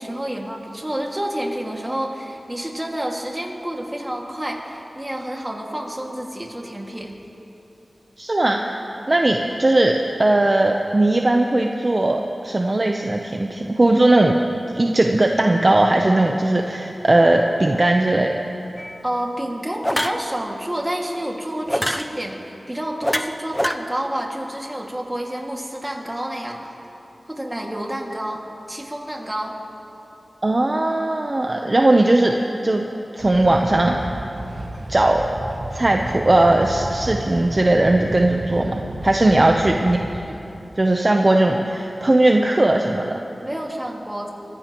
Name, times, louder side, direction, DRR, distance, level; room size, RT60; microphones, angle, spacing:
voice 1, 0.0-7.1 19.0-22.4 22.7-26.7 27.3-29.6 39.3-39.5 43.4-44.3, right 1 dB, 15° right, 0 dB, 2.1 m, -29 dB
voice 2, 8.2-14.4 14.7-18.3 30.4-32.4 32.6-32.9 33.1-34.0 34.9-35.2 35.7-40.0 40.8-43.2, right 2 dB, 40° right, 2 dB, 0.8 m, -18 dB
sound 1, 18.8-19.0 19.8-20.2 21.7-22.1 23.0-23.7, equal, 5° left, 0.6 m, -24 dB
sound 2, 33.2-40.2, right 1 dB, 80° right, 1.7 m, -32 dB
23.5 x 15.0 x 3.0 m, 2.9 s
wide cardioid pair, 65°, 0 cm